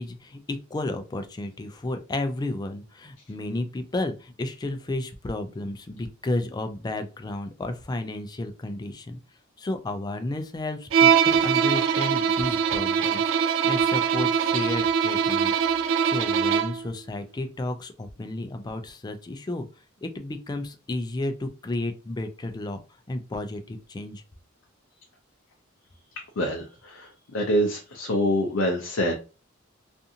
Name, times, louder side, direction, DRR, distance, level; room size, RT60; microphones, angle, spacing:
voice 1, 0.0-9.2 9.6-13.3 13.6-15.5 16.0-19.7 20.0-22.8 23.1-24.2, left 2 dB, 20° left, 7 dB, 0.3 m, -32 dB
Bowed string instrument, 10.9-16.9, right 7 dB, 75° right, 0.3 m, -22 dB
voice 2, 26.4-29.2, equal, 75° left, 1 dB, 0.5 m, -26 dB
2.5 x 2.4 x 2.7 m, 0.32 s
head